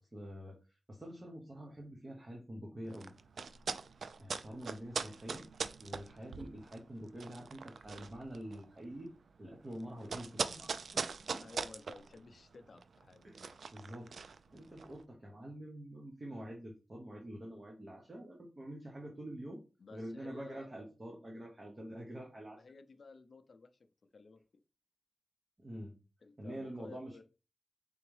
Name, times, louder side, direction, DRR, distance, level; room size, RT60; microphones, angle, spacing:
voice 1, 0.1-0.6 0.9-3.1 4.2-5.5 5.8-9.1 9.4-11.0 11.3-11.4 13.2-14.1 14.5-19.6 19.9-22.6 25.6-25.9 26.4-27.2, right 1 dB, 25° right, -1 dB, 0.8 m, -46 dB
sound 1, 2.9-15.0, right 5 dB, 80° right, 0.3 m, -42 dB
voice 2, 11.4-13.6 19.8-20.7 22.5-23.9 24.1-24.4 26.2-27.2, left 3 dB, 55° left, 9 dB, 0.4 m, -54 dB
3.7 x 3.5 x 3.2 m, 0.32 s
wide cardioid pair, 140°, 0 cm